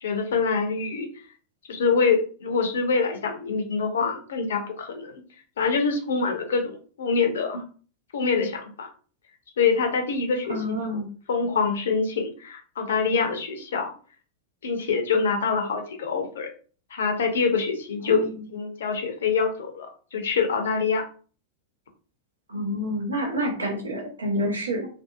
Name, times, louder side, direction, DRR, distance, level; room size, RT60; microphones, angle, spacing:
voice 1, 0.0-1.1 1.7-5.2 5.6-7.6 8.1-8.9 9.6-11.0 11.3-13.9 14.6-16.5 16.9-21.0, left 5 dB, 65° left, 4 dB, 0.5 m, -25 dB
voice 2, 10.5-11.1 18.1-18.4 22.5-24.9, equal, 75° right, 1 dB, 0.8 m, -28 dB
2.7 x 2.3 x 2.3 m, 0.40 s
figure-of-eight pair, 90°, 0 cm